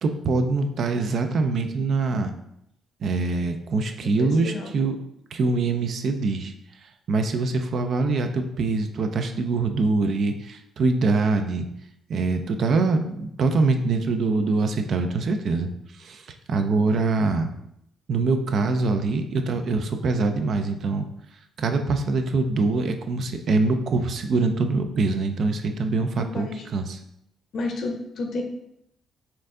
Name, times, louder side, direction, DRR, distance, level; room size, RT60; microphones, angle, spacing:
voice 1, 0.0-2.3 3.0-5.0 5.3-6.5 7.1-11.7 12.1-15.7 16.0-16.2 16.5-17.5 18.1-21.1 21.6-27.0, right 3 dB, 60° right, 6 dB, 0.5 m, -24 dB
voice 2, 4.0-4.7 26.2-26.7 27.5-28.4, left 3 dB, 65° left, 4 dB, 0.8 m, -31 dB
4.4 x 2.6 x 3.7 m, 0.77 s
cardioid pair, 90°, 0 cm